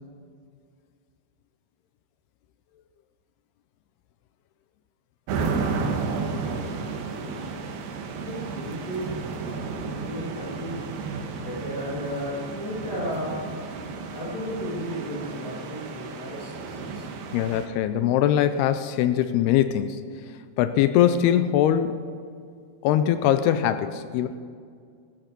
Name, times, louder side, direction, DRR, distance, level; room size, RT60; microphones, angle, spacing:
sound 1, 5.3-17.7, right 4 dB, 75° right, 3.1 m, -32 dB
voice 1, 8.2-9.2 9.9-10.9 11.3-13.4 14.1-17.0, equal, 25° left, -10 dB, 3.5 m, -33 dB
voice 2, 17.3-20.0 20.6-22.0 22.8-24.3, left 10 dB, 85° left, 11 dB, 2.4 m, -22 dB
15.0 x 14.0 x 5.2 m, 2.2 s
omnidirectional pair, 5.0 m